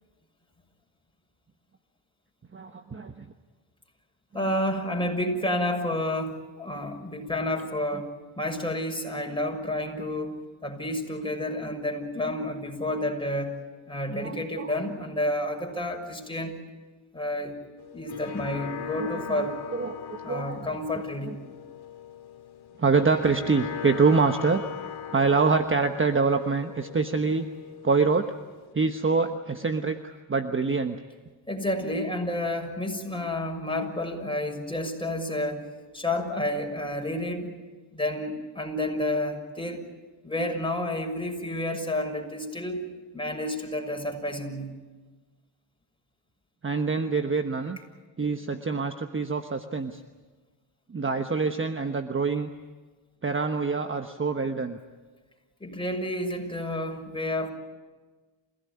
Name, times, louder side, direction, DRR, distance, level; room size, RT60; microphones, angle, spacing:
voice 1, 2.5-3.2 4.4-4.5 9.4-9.5 14.2-14.7 19.0-20.6 21.3-21.4 22.8-24.6 25.1-27.5 27.8-28.3 28.7-31.0 46.6-47.8 48.2-50.0 50.9-52.5 53.2-54.8, right 4 dB, 25° right, 7 dB, 1.2 m, -25 dB
voice 2, 4.3-8.1 8.4-13.5 13.9-16.6 17.1-17.5 17.9-19.6 20.2-21.4 31.5-35.7 35.9-37.6 37.9-39.9 40.2-42.8 43.1-44.7 55.6-57.5, left 1 dB, 10° left, 2 dB, 6.4 m, -30 dB
sound 1, 17.8-28.7, left 7 dB, 55° left, 2.3 m, -40 dB
29.0 x 16.5 x 9.7 m, 1.3 s
cardioid pair, 75°, 46 cm